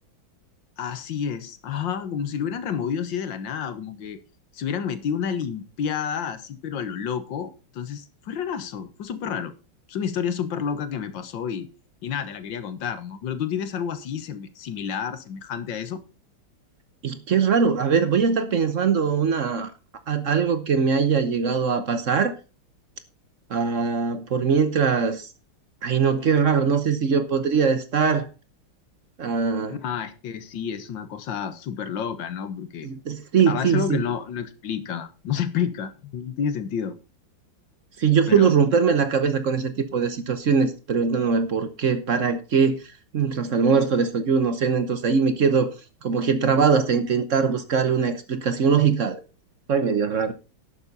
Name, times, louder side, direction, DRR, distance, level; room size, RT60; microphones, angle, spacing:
voice 1, 0.8-4.2 4.5-9.5 9.9-11.7 12.0-16.0 29.7-32.9 33.5-37.0 38.3-38.6, left 7 dB, 75° left, 1.9 m, -30 dB
voice 2, 17.0-19.7 20.1-22.3 23.5-25.3 25.8-28.3 29.2-29.8 32.8-34.0 38.0-42.8 43.1-45.7 46.0-49.2 49.7-50.3, right 6 dB, 50° right, 1.1 m, -21 dB
11.5 x 8.7 x 4.1 m
omnidirectional pair, 2.1 m